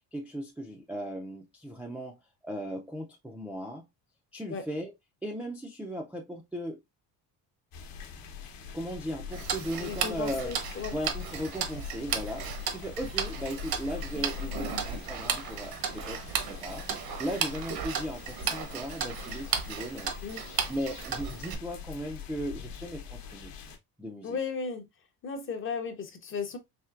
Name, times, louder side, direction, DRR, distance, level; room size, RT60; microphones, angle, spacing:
voice 1, 0.1-2.2 2.4-3.9 4.3-4.9 5.2-6.8 8.7-10.6 10.9-16.9 17.2-20.1 20.7-23.5 24.0-24.4, equal, 5° right, 0.3 m, -37 dB
sound 1, 7.7-23.8, left 8 dB, 60° left, 0.9 m, -43 dB
Tick-tock, 9.3-21.5, right 7 dB, 65° right, 0.8 m, -35 dB
voice 2, 9.8-11.0 20.2-20.4 24.2-24.9 25.2-26.6, left 5 dB, 30° left, 0.6 m, -35 dB
4.4 x 3.2 x 2.4 m
cardioid pair, 170°, 39 cm